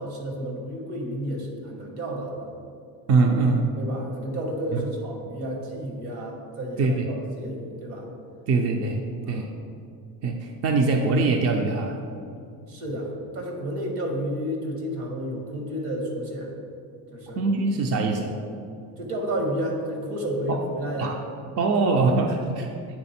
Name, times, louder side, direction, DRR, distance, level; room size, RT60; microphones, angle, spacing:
voice 1, 0.0-2.5 3.7-8.1 9.2-9.5 12.7-16.5 17.1-17.5 17.9-18.3 19.0-21.2, equal, 65° right, 0 dB, 1.6 m, -31 dB
voice 2, 3.1-3.7 4.7-4.8 6.8-7.1 8.5-9.0 9.3-9.5 10.2-12.0 17.4-18.3 20.5-20.6 21.0-21.2 21.6-22.7, right 3 dB, 40° right, 3 dB, 0.4 m, -22 dB
8.8 x 3.6 x 4.2 m, 2.4 s
cardioid pair, 135°, 40 cm